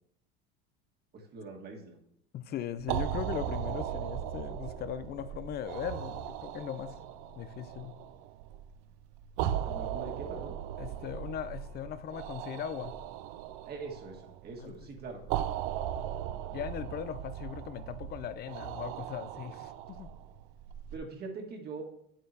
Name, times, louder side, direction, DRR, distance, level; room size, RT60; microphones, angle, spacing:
voice 1, 1.1-2.0 9.6-10.5 13.7-15.2 20.9-21.8, right 4 dB, 35° right, 1 dB, 1.7 m, -42 dB
voice 2, 2.3-7.0 7.4-7.9 10.8-12.9 14.6-14.7 16.5-20.1, left 9 dB, 35° left, 14 dB, 0.5 m, -39 dB
sound 1, 2.8-21.0, right 10 dB, 60° right, 0.5 m, -38 dB
8.4 x 7.5 x 2.8 m, 0.74 s
supercardioid pair, 110°, 30 cm